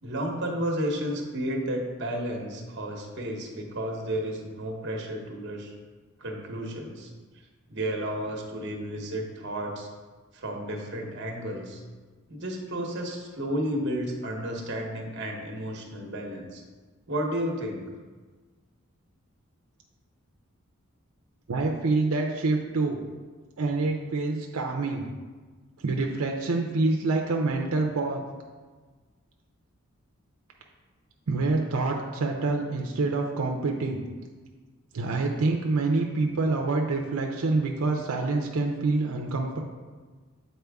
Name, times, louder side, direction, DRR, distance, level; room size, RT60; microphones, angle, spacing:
voice 1, 0.0-5.7 6.2-7.1 7.7-9.9 10.3-11.8 12.3-16.6 17.1-17.8, equal, 55° right, 1 dB, 1.0 m, -32 dB
voice 2, 21.5-23.0 23.6-25.1 25.8-28.2 31.3-34.0 34.9-39.6, right 3 dB, 90° right, 2 dB, 0.6 m, -26 dB
7.9 x 4.3 x 3.5 m, 1.4 s
head